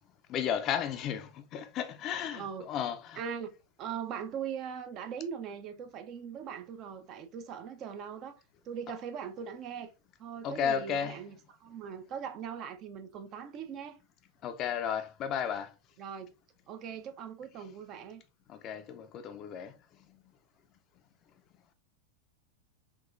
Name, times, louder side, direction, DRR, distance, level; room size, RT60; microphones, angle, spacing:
voice 1, 0.3-3.2 10.4-11.2 14.4-15.7 18.5-19.7, left 8 dB, 35° left, 0.4 m, -33 dB
voice 2, 2.3-2.9 3.1-3.5 3.8-8.4 8.7-9.9 10.2-14.0 16.0-16.3 16.7-18.2, right 7 dB, 35° right, 0.5 m, -40 dB
3.7 x 2.9 x 2.5 m
figure-of-eight pair, 90°, 0 cm